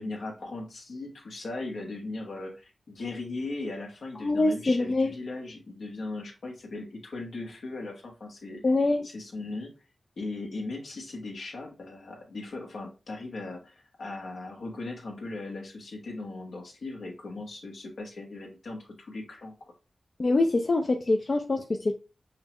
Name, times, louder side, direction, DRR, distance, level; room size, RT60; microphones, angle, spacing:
voice 1, 0.0-8.6 9.0-9.7 10.2-19.6, left 2 dB, 85° left, 1.1 m, -38 dB
voice 2, 4.2-5.1 8.6-9.1 20.2-21.9, left 2 dB, 55° left, 0.4 m, -24 dB
5.5 x 2.2 x 2.9 m
cardioid pair, 45°, 0 cm